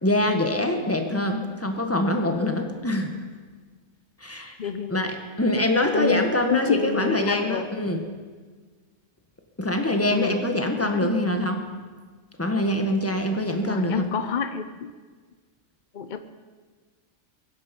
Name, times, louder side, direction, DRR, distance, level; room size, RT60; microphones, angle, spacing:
voice 1, 0.0-3.1 4.2-4.6 4.9-8.0 9.6-11.6 12.4-14.0, left 1 dB, 10° left, 4 dB, 1.4 m, -24 dB
voice 2, 4.6-5.6 5.9-8.1 10.1-10.4 10.8-11.2 13.6-14.9 15.9-16.2, left 6 dB, 45° left, 9 dB, 0.7 m, -29 dB
23.5 x 10.5 x 5.3 m, 1.4 s
omnidirectional pair, 1.4 m